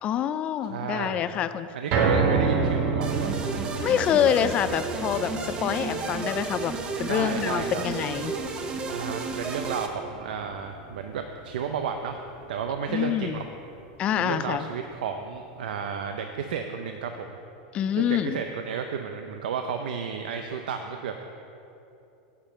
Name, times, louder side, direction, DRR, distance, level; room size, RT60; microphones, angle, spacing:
voice 1, 0.0-1.7 3.8-6.7 7.0-8.3 12.9-13.4 14.0-14.7 17.7-18.4, left 9 dB, 25° left, 12 dB, 0.3 m, -26 dB
voice 2, 0.7-1.2 1.7-3.3 7.1-7.8 8.9-12.2 12.5-13.4 14.1-17.4 18.0-21.2, right 6 dB, 85° right, 5 dB, 0.6 m, -32 dB
sound 1, 1.9-14.2 14.6-14.7 15.1-15.2, right 4 dB, 45° right, 1.2 m, -31 dB
sound 2, 3.0-9.9, right 4 dB, 20° right, 0.7 m, -33 dB
9.7 x 5.3 x 7.6 m, 2.7 s
supercardioid pair, 160°, 5 cm